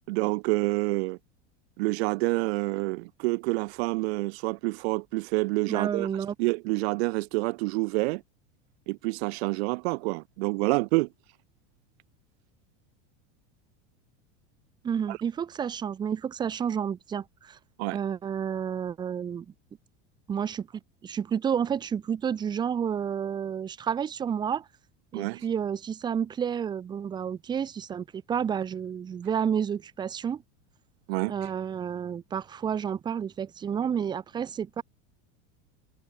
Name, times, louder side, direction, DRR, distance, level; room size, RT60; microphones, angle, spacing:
voice 1, 0.1-1.2 1.8-6.1 6.4-8.2 8.9-11.1 15.1-15.2 17.8-18.0 25.1-25.4 31.1-31.3, right 25 dB, 60° right, 0.6 m, -27 dB
voice 2, 5.7-6.3 14.8-17.6 17.9-19.5 20.3-20.7 21.0-24.7 25.1-30.4 31.3-34.8, right 8 dB, 10° right, 0.6 m, -30 dB
supercardioid pair, 160°, 36 cm